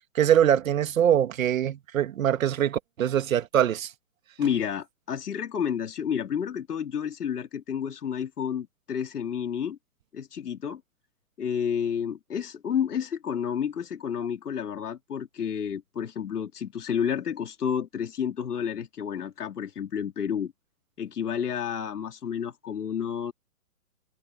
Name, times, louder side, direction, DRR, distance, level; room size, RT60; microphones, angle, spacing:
voice 1, 0.1-3.9, right 10 dB, 60° right, 2.3 m, -23 dB
voice 2, 4.4-9.8 10.1-10.8 11.4-20.5 21.0-23.3, left 8 dB, 80° left, 3.8 m, -30 dB
hypercardioid pair, 155°, 46 cm